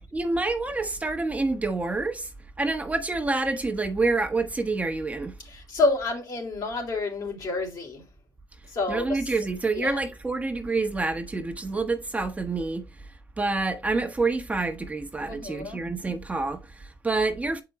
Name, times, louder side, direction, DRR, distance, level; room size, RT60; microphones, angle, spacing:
voice 1, 0.0-2.3 2.6-5.3 8.9-12.8 13.4-17.6, right 3 dB, 20° right, 1.0 m, -27 dB
voice 2, 5.5-8.0 8.7-9.2 9.8-9.9 15.3-15.8, left 3 dB, 60° left, 2.5 m, -28 dB
7.2 x 4.8 x 3.0 m
cardioid pair, 80°, 7 cm